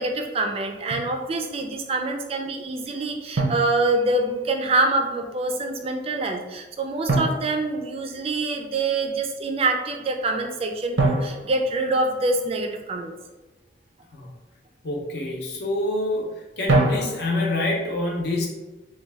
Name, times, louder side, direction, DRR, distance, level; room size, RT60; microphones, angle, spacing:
voice 1, 0.0-13.1, right 2 dB, 35° right, 4 dB, 0.4 m, -25 dB
Drum, 0.9-1.2 3.4-4.5 7.1-8.5 11.0-12.7 16.7-17.6, right 2 dB, 85° right, 0.6 m, -26 dB
voice 2, 14.8-16.3 16.6-18.5, left 2 dB, 60° left, 0 dB, 0.7 m, -26 dB
3.2 x 2.2 x 3.4 m, 1.1 s
head